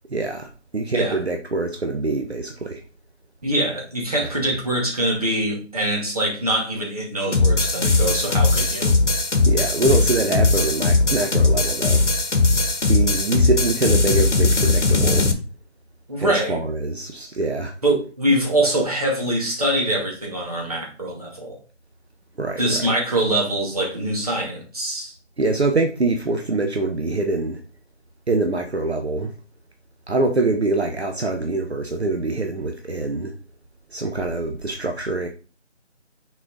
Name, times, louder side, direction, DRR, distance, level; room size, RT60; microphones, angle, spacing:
voice 1, 0.1-0.5 0.7-2.8 9.4-12.0 12.9-15.3 16.2-17.7 22.4-22.6 25.4-27.6 28.3-29.3 30.1-33.3 33.9-35.3, right 3 dB, 60° right, 1.0 m, -24 dB
voice 2, 3.4-9.0 16.1-16.6 17.8-21.6 22.6-25.1, right 1 dB, 30° right, 1.8 m, -23 dB
sound 1, 7.3-15.3, left 3 dB, 75° left, 1.4 m, -19 dB
6.3 x 4.3 x 4.0 m
figure-of-eight pair, 170°, 36 cm